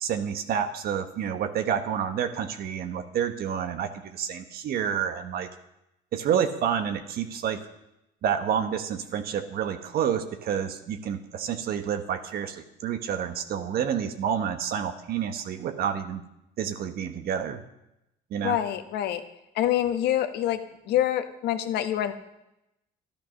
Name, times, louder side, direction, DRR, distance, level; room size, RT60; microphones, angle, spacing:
voice 1, 0.0-5.5 6.1-7.6 8.2-16.2 16.6-17.6 18.3-18.6, right 8 dB, 65° right, 8 dB, 1.1 m, -29 dB
voice 2, 18.4-19.2 19.5-20.6 20.9-22.1, left 12 dB, 80° left, 9 dB, 1.2 m, -26 dB
12.5 x 10.5 x 6.4 m, 0.86 s
cardioid pair, 110°, 17 cm